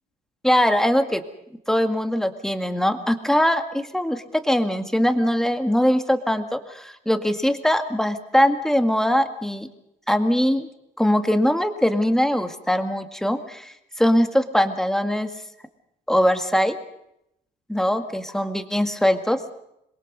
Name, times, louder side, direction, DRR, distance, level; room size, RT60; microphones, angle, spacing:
voice 1, 0.4-1.2 1.7-9.7 10.1-10.7 11.0-15.3 16.1-16.8 17.7-19.4, equal, 5° left, 7 dB, 1.9 m, -21 dB
26.5 x 22.0 x 5.4 m, 0.80 s
cardioid pair, 110°, 17 cm